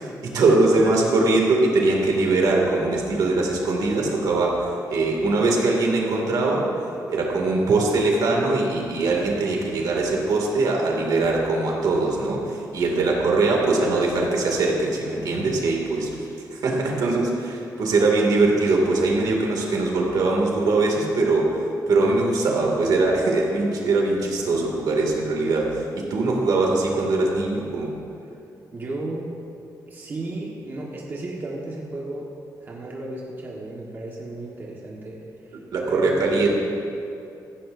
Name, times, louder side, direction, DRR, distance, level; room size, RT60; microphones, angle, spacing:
voice 1, 0.0-6.7 7.1-16.1 16.5-27.9 35.7-36.6, right 3 dB, 70° right, -1 dB, 2.3 m, -22 dB
voice 2, 28.7-29.3 29.9-32.3 32.6-35.6 35.9-36.5, right 2 dB, 30° right, -4 dB, 1.4 m, -33 dB
17.0 x 14.5 x 2.6 m, 2.7 s
wide cardioid pair, 175°, 7 cm